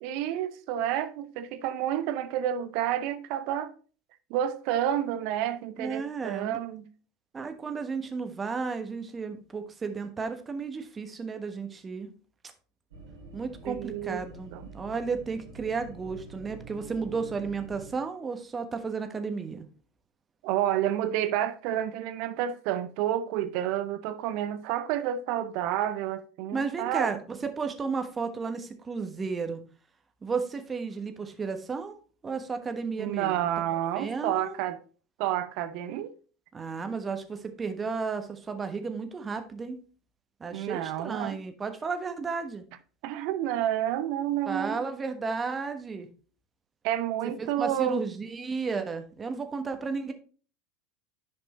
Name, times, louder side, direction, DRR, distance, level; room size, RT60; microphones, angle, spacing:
voice 1, 0.0-3.7 4.3-6.9 13.6-14.2 14.5-14.7 20.4-27.2 33.0-34.8 35.2-36.1 40.5-41.4 43.0-44.8 46.8-48.0, right 11 dB, 60° right, 0.7 m, -30 dB
voice 2, 5.8-6.6 7.3-12.1 13.3-19.6 26.5-29.6 30.2-31.9 32.2-33.5 33.9-34.5 36.5-39.8 40.4-42.6 44.5-46.1 47.4-50.1, right 5 dB, 25° right, 1.2 m, -33 dB
sound 1, 12.9-17.9, right 4 dB, 75° right, 2.3 m, -46 dB
10.0 x 5.2 x 3.1 m
figure-of-eight pair, 75°, 0 cm